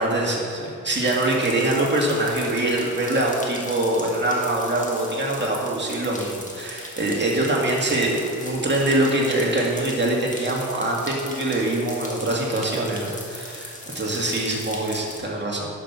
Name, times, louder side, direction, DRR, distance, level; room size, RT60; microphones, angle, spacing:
voice 1, 0.0-15.7, right 1 dB, 30° right, -3 dB, 2.3 m, -24 dB
sound 1, 0.9-15.2, left 1 dB, 20° left, 2.0 m, -38 dB
10.0 x 7.5 x 5.7 m, 2.3 s
wide cardioid pair, 80°, 34 cm